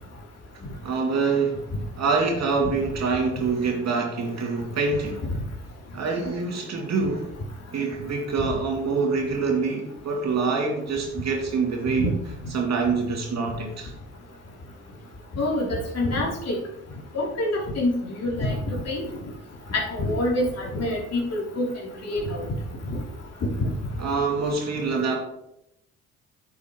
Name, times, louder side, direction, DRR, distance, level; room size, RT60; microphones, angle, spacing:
voice 1, 0.8-1.7 2.0-5.2 5.9-7.3 7.7-12.1 12.5-13.9 24.0-25.2, right 4 dB, 50° right, 1 dB, 2.5 m, -25 dB
voice 2, 15.3-16.6 17.1-19.0 19.7-21.7 22.0-22.5 23.6-23.7, left 1 dB, 45° left, -3 dB, 3.4 m, -26 dB
9.7 x 8.3 x 3.1 m, 0.82 s
hypercardioid pair, 50°, 34 cm